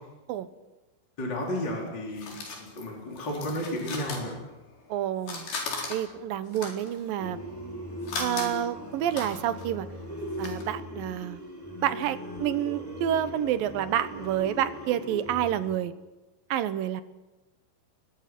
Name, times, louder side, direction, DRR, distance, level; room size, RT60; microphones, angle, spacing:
voice 1, 1.2-4.4, left 1 dB, 25° left, -1 dB, 4.4 m, -33 dB
sound 1, 1.5-4.9 5.2-10.6, left 4 dB, 70° left, 5.9 m, -38 dB
voice 2, 4.9-5.5 5.9-7.4 8.2-9.9 10.4-11.4 11.8-15.9 16.5-17.0, right 11 dB, 70° right, 13 dB, 2.5 m, -29 dB
sound 2, 7.2-15.7, left 1 dB, 5° left, 4.8 m, -39 dB
29.5 x 22.0 x 6.0 m, 1.1 s
omnidirectional pair, 4.6 m